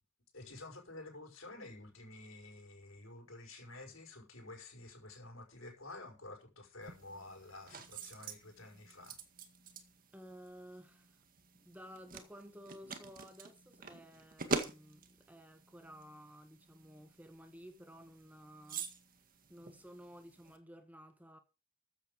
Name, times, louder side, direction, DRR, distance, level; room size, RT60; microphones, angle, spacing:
voice 1, 0.3-9.2, left 2 dB, 70° left, 5.0 m, -51 dB
sound 1, 6.8-20.6, right 3 dB, 45° right, 1.9 m, -46 dB
voice 2, 10.1-11.2 11.5-18.9 19.5-21.4, equal, 10° right, 1.4 m, -54 dB
14.0 x 8.4 x 5.0 m
head